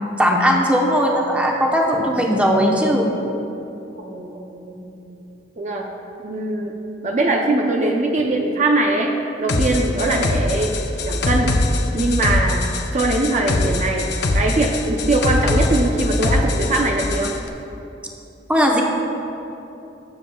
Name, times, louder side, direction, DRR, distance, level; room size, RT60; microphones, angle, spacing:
voice 1, 0.2-3.1 18.5-18.8, equal, 5° right, -1 dB, 0.9 m, -18 dB
voice 2, 4.0-5.2 5.6-5.9 6.2-6.7 7.0-10.8 11.0-11.5 11.9-12.6 12.9-17.3, right 2 dB, 40° right, 1 dB, 0.6 m, -21 dB
sound 1, 9.5-17.4, left 2 dB, 65° left, 0.7 m, -22 dB
19.5 x 7.3 x 2.3 m, 2.9 s
head